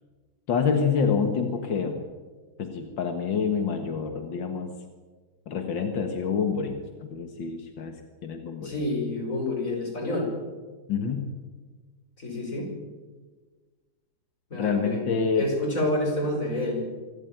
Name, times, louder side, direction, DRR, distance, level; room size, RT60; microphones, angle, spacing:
voice 1, 0.5-2.0 2.6-4.7 5.5-8.8 10.9-11.4 14.5-15.5, left 5 dB, 90° left, 5 dB, 2.3 m, -27 dB
voice 2, 8.6-10.3 12.2-12.7 14.5-15.0 15.3-16.9, left 1 dB, 45° left, 0 dB, 6.3 m, -28 dB
25.5 x 13.5 x 9.3 m, 1.4 s
omnidirectional pair, 2.0 m